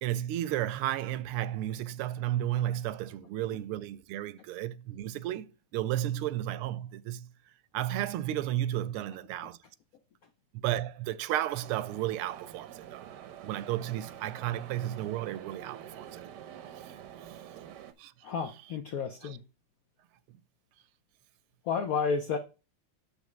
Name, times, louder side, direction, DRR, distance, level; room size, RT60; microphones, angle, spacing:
voice 1, 0.0-7.3 7.7-9.6 10.5-13.0 13.4-16.2 17.6-17.7 18.0-18.1, right 13 dB, 85° right, 1.5 m, -33 dB
sound 1, 11.6-17.9, right 10 dB, 70° right, 1.1 m, -47 dB
voice 2, 18.2-19.4 21.6-22.4, left 5 dB, 90° left, 0.7 m, -31 dB
8.2 x 6.6 x 3.2 m
omnidirectional pair, 2.4 m